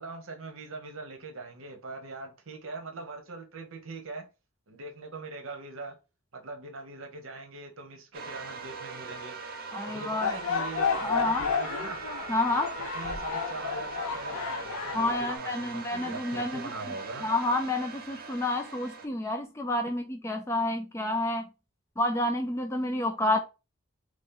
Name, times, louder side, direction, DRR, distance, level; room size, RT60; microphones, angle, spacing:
voice 1, 0.0-4.2 4.7-6.0 6.3-9.3 9.8-12.1 12.8-17.3, right 3 dB, 70° right, 0.8 m, -41 dB
sound 1, 8.1-19.1, right 4 dB, 45° right, 0.6 m, -40 dB
voice 2, 9.7-10.4 11.0-11.5 12.3-12.7 14.9-16.9 17.2-21.5 22.0-23.4, left 2 dB, 15° left, 0.3 m, -29 dB
sound 2, 10.2-15.4, left 6 dB, 90° left, 0.5 m, -32 dB
3.1 x 2.8 x 3.6 m
head